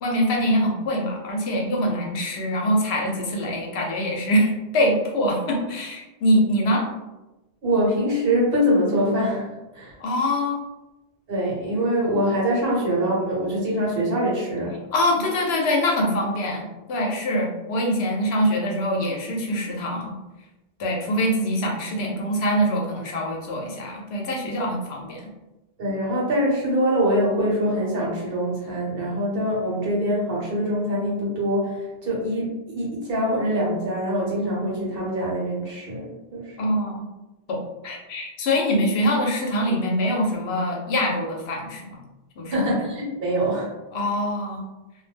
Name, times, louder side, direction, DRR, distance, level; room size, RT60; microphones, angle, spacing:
voice 1, 0.0-6.9 10.0-10.6 14.9-20.1 20.8-25.2 36.6-37.1 37.5-42.0 42.4-42.7 43.9-44.7, equal, 80° left, 0 dB, 0.9 m, -24 dB
voice 2, 7.6-9.5 9.7-10.0 11.3-14.8 25.8-36.6 42.5-43.7, equal, 65° right, -5 dB, 1.0 m, -24 dB
2.3 x 2.0 x 3.3 m, 1.1 s
omnidirectional pair, 1.1 m